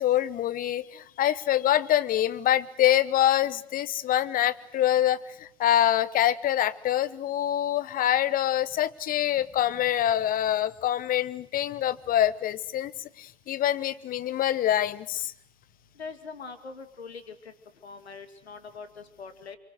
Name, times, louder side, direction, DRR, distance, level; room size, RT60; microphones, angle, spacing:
voice 1, 0.0-15.3, left 12 dB, 25° left, 18 dB, 1.0 m, -25 dB
voice 2, 16.0-17.3 17.8-19.6, left 4 dB, 75° left, 9 dB, 2.7 m, -42 dB
29.5 x 24.5 x 6.4 m, 0.68 s
figure-of-eight pair, 85°, 32 cm